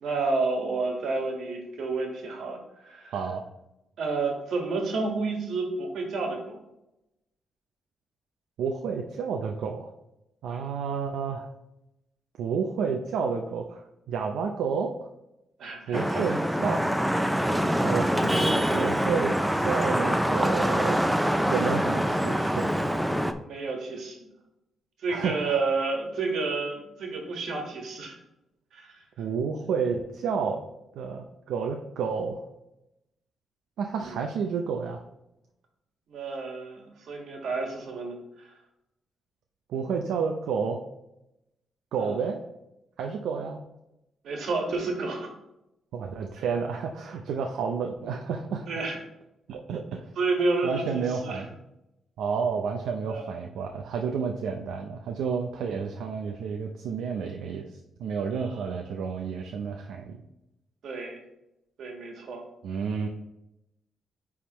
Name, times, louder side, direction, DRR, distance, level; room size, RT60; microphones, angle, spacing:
voice 1, 0.0-3.2 4.0-6.6 10.5-10.6 15.6-16.2 23.4-24.3 25.0-28.2 28.7-29.0 34.0-34.2 36.1-38.5 42.0-42.2 44.2-45.3 46.4-46.5 48.7-49.0 50.2-51.4 53.1-53.3 58.3-58.6 60.8-61.2 61.8-62.4, right 3 dB, 70° right, 2 dB, 1.6 m, -30 dB
voice 2, 3.1-3.4 8.6-9.9 10.4-11.5 12.4-13.8 14.1-15.1 15.9-16.8 17.8-21.0 21.5-22.7 25.1-25.6 29.2-30.6 30.9-32.4 33.8-35.0 39.7-40.8 41.9-42.4 43.0-43.6 45.9-48.7 49.5-50.1 50.6-51.6 52.2-60.2 62.6-63.1, right 6 dB, 85° right, 2 dB, 0.5 m, -30 dB
Vehicle horn car horn honking / Traffic noise roadway noise, 15.9-23.3, equal, 5° right, 0.4 m, -25 dB
9.4 x 3.5 x 3.0 m, 0.88 s
cardioid pair, 120°, 0 cm